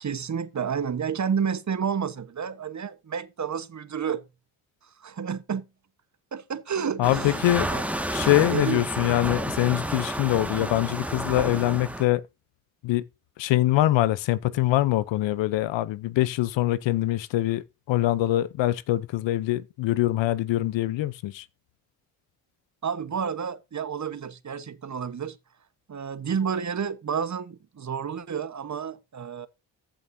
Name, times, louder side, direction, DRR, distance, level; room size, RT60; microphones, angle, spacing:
voice 1, 0.0-4.2 5.0-5.7 6.3-7.4 7.7-7.8 8.5-8.8 22.8-25.4 25.9-29.5, right 7 dB, 35° right, 1.2 m, -30 dB
voice 2, 7.0-7.7 8.1-12.2 12.8-13.0 13.4-21.4, left 15 dB, 60° left, 0.8 m, -24 dB
sound 1, 7.0-12.0, right 1 dB, 5° right, 1.8 m, -30 dB
14.5 x 7.6 x 2.7 m
hypercardioid pair, 45°, 50 cm